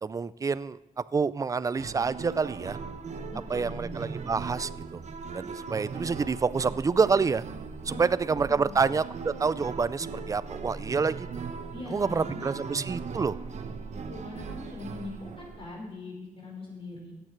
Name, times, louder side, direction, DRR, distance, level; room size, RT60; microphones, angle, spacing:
voice 1, 0.0-2.8 3.5-5.0 5.3-7.4 7.9-11.3 11.9-13.4, right 5 dB, 25° right, 17 dB, 0.4 m, -28 dB
sound 1, 1.8-15.7, right 5 dB, 55° right, 0.9 m, -39 dB
voice 2, 3.3-3.9 7.9-8.8 11.7-12.6 13.9-17.1, left 2 dB, 40° left, -2 dB, 4.7 m, -42 dB
14.5 x 8.8 x 4.5 m, 0.94 s
wide cardioid pair, 120°, 14 cm